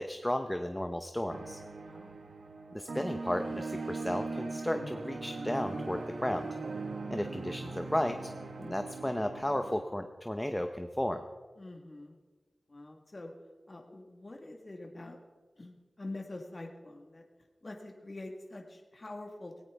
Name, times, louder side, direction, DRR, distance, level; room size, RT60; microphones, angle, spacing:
voice 1, 0.0-1.6 2.7-6.5 7.1-8.3 8.6-11.2, left 1 dB, 10° left, 6 dB, 0.7 m, -34 dB
sound 1, 1.3-9.8, right 3 dB, 85° right, 1.5 m, -40 dB
voice 2, 1.8-2.1 11.6-12.2 12.7-13.3 13.7-15.2 15.6-17.2 17.6-19.6, left 2 dB, 35° left, 2 dB, 1.5 m, -45 dB
18.0 x 17.5 x 3.5 m, 1.4 s
wide cardioid pair, 100°, 0 cm